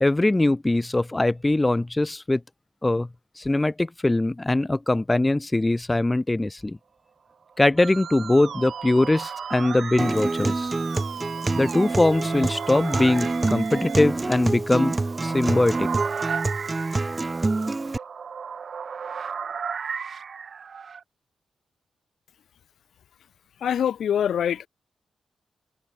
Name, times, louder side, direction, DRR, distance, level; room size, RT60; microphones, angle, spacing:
voice 1, 0.0-2.4 2.8-3.1 3.4-6.8 7.6-10.7 11.5-14.9 15.2-15.9, left 2 dB, 15° left, 0.9 m, -22 dB
sound 1, 7.6-21.0, right 6 dB, 55° right, 2.5 m, -36 dB
Musical instrument, 7.8-14.0, right 8 dB, 75° right, 1.0 m, -36 dB
Acoustic guitar, 10.0-18.0, right 2 dB, 25° right, 0.9 m, -27 dB
voice 2, 23.6-24.7, left 9 dB, 85° left, 0.6 m, -24 dB
wide cardioid pair, 105°, 0 cm